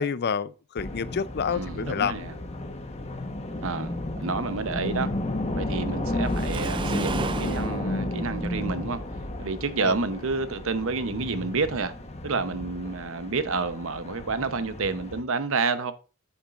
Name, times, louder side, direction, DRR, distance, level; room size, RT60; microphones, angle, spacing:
voice 1, 0.0-2.2 9.8-10.0, left 6 dB, 50° left, 0.5 m, -28 dB
sound 1, 0.8-15.2, left 1 dB, 30° left, 1.2 m, -33 dB
voice 2, 1.5-2.3 3.6-5.2 5.5-9.0 9.4-11.9 12.2-15.9, right 4 dB, 65° right, 0.9 m, -29 dB
Waves surf, 6.2-7.7, right 4 dB, 25° right, 0.4 m, -32 dB
8.9 x 7.3 x 2.5 m
head